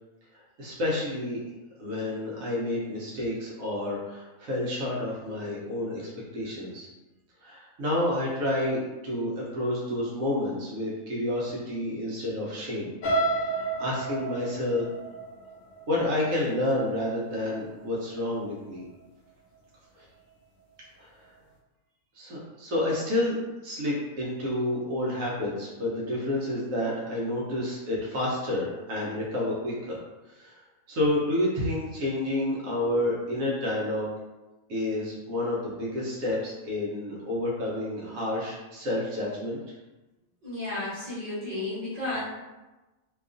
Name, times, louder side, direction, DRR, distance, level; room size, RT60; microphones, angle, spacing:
voice 1, 0.6-1.5 1.8-6.9 7.4-12.9 13.3-14.9 15.9-18.8 19.9-20.0 21.0-21.1 22.1-23.4 23.6-30.0 30.3-30.6 30.9-34.1 34.7-39.6, left 1 dB, 75° right, -5 dB, 1.0 m, -29 dB
sound 1, 13.0-17.0 17.5-17.8 18.1-18.2, right 2 dB, 75° left, 1.0 m, -31 dB
voice 2, 40.4-42.2, left 2 dB, 30° right, -11 dB, 1.2 m, -33 dB
2.8 x 2.3 x 2.4 m, 1.1 s
omnidirectional pair, 1.4 m